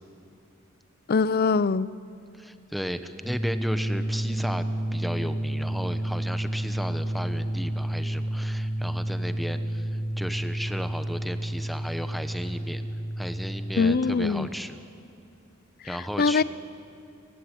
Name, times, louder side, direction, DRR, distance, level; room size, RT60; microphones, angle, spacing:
voice 1, 1.1-2.0 13.8-14.5 16.2-16.4, left 4 dB, 45° left, 18 dB, 0.5 m, -22 dB
voice 2, 2.3-4.6 4.9-12.8 13.2-14.8 15.8-16.4, equal, ahead, 9 dB, 1.1 m, -34 dB
sound 1, 3.2-13.8, right 1 dB, 15° right, 6.2 m, -30 dB
30.0 x 15.5 x 10.0 m, 2.6 s
head